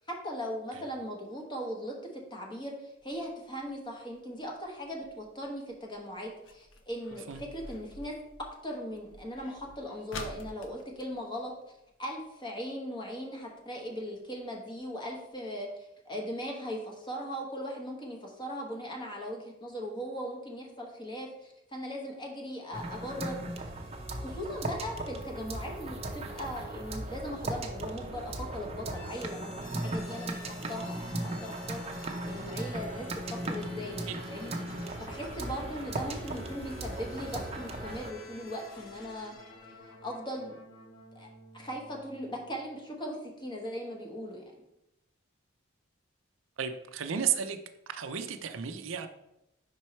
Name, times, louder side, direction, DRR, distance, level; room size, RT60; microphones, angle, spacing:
voice 1, 0.1-1.9 2.3-11.5 12.0-23.9 24.1-39.3 39.7-40.6 41.1-41.3 41.5-44.4, equal, 25° left, 0 dB, 1.1 m, -39 dB
sound 1, 3.0-12.2 12.6-12.7 12.9-13.3 13.8-13.9 14.4-14.5 14.8-14.9 15.3-15.4, left 2 dB, 65° left, 0.7 m, -49 dB
sound 2, 22.7-38.1, right 1 dB, 30° right, 0.6 m, -37 dB
sound 3, 28.9-42.8, left 3 dB, 85° left, 1.5 m, -50 dB
voice 2, 46.6-47.6 47.9-49.1, right 8 dB, 75° right, 8 dB, 0.5 m, -33 dB
5.3 x 4.5 x 4.3 m, 0.87 s
head